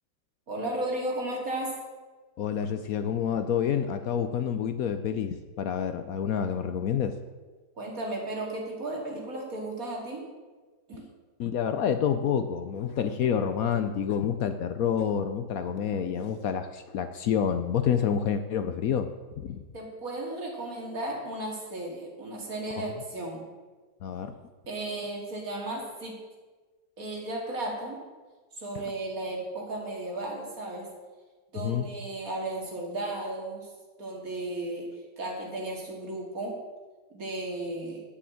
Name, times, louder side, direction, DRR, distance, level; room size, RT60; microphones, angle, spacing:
voice 1, 0.5-1.8 7.8-10.3 10.9-11.1 19.7-23.4 24.7-26.2 27.0-28.1 28.5-30.9 31.5-33.7 34.0-34.9 35.2-36.6 37.1-38.0, right 2 dB, 55° right, -1 dB, 2.9 m, -34 dB
voice 2, 2.4-7.2 11.4-19.1 19.4-19.6 22.8-22.9 24.0-24.3 28.7-28.8 31.6-31.9, left 8 dB, 65° left, 9 dB, 1.0 m, -28 dB
9.5 x 7.1 x 8.6 m, 1.3 s
omnidirectional pair, 1.8 m